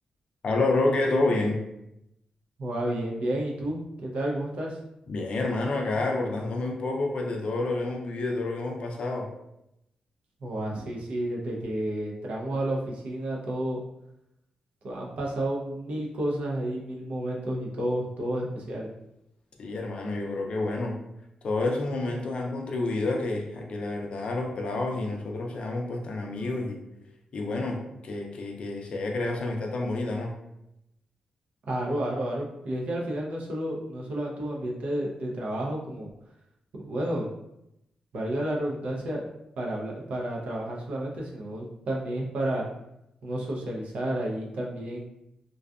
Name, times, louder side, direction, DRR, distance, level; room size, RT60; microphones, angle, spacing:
voice 1, 0.4-1.6 5.1-9.3 19.6-21.0 21.4-26.8 27.3-30.3, left 2 dB, 50° left, 1 dB, 0.4 m, -29 dB
voice 2, 2.6-4.8 10.4-13.8 14.8-18.9 31.7-36.1 36.7-37.3 38.1-39.3 39.6-42.7 43.2-45.1, right 1 dB, 70° right, -2 dB, 0.5 m, -31 dB
2.6 x 2.3 x 2.3 m, 0.84 s
wide cardioid pair, 150°, 2 cm